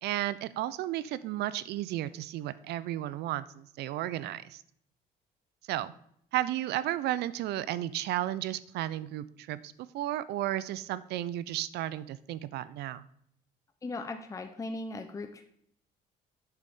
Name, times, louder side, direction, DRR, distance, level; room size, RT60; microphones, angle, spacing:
voice 1, 0.0-4.6 5.7-5.9 6.3-13.0, right 13 dB, 75° right, 16 dB, 0.5 m, -33 dB
voice 2, 13.8-15.4, left 2 dB, 20° left, 7 dB, 0.7 m, -38 dB
8.2 x 6.7 x 3.6 m, 0.69 s
cardioid pair, 110°, 17 cm